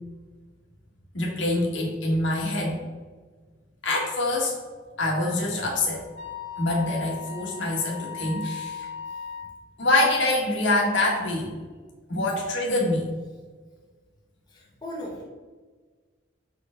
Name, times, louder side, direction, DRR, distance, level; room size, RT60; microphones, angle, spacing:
voice 1, 1.1-2.8 3.8-4.5 5.0-6.0 6.6-8.8 9.8-11.5 12.1-13.1, left 2 dB, 75° left, -2 dB, 1.8 m, -25 dB
Wind instrument woodwind instrument, 5.2-9.5, left 7 dB, 60° right, 1.5 m, -38 dB
voice 2, 14.5-15.2, equal, 20° left, -5 dB, 1.4 m, -38 dB
6.5 x 4.4 x 3.9 m, 1.4 s
head